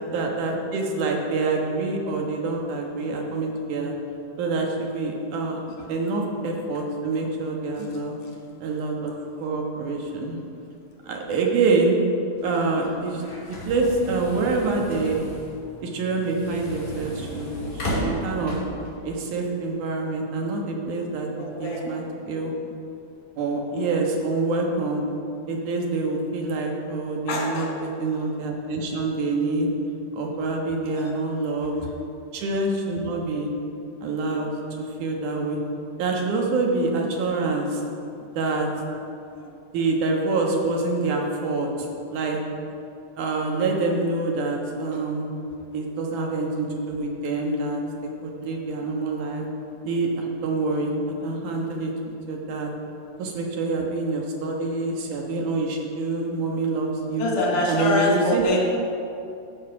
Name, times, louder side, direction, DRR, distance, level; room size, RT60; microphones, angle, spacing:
voice 1, 0.1-3.9 4.4-5.6 5.9-8.2 8.6-9.1 9.4-10.4 11.0-12.0 12.4-15.2 15.8-18.6 19.0-21.3 21.6-22.5 23.4-25.0 25.5-27.7 28.0-29.7 30.1-31.8 32.3-33.5 34.0-34.5 34.8-35.6 36.0-37.8 38.4-38.7 39.7-42.4 43.2-45.3 45.7-49.4 49.8-51.9 52.3-52.7 53.2-57.3 57.7-58.4, right 3 dB, 80° right, 0 dB, 2.8 m, -26 dB
sound 1, 12.4-18.9, equal, 35° left, 3.4 m, -34 dB
voice 2, 21.4-21.9 23.7-24.1 27.3-27.8 30.8-31.1 31.8-31.9 39.3-39.5 57.2-58.8, left 2 dB, 90° left, -1 dB, 3.3 m, -26 dB
14.0 x 5.7 x 5.8 m, 2.6 s
omnidirectional pair, 3.5 m